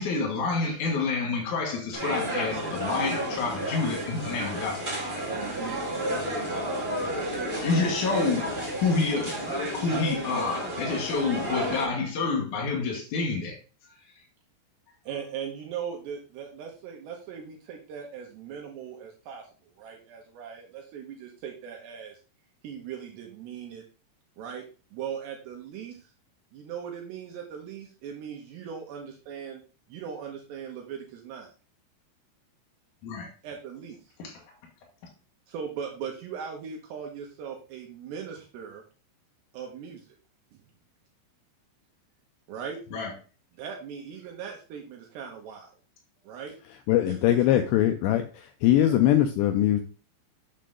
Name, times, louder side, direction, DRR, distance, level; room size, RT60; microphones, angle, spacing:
voice 1, 0.0-4.9 7.5-8.5 8.8-13.6 33.0-33.3 34.2-34.3 42.9-43.1, left 4 dB, 70° left, 1.9 m, -28 dB
sound 1, 1.9-11.8, equal, 15° right, 2.2 m, -31 dB
voice 2, 5.3-5.8 15.1-19.5 19.8-22.2 22.6-23.8 24.4-24.6 24.9-26.1 26.5-29.6 29.9-31.5 33.4-34.0 35.5-38.8 39.5-40.0 40.5-40.6 42.5-42.8 43.6-45.7 46.2-46.5 47.1-47.2 48.8-49.0, right 7 dB, 75° right, 2.8 m, -39 dB
voice 3, 46.9-49.8, left 12 dB, 90° left, 2.5 m, -22 dB
7.5 x 6.7 x 3.7 m
omnidirectional pair, 5.7 m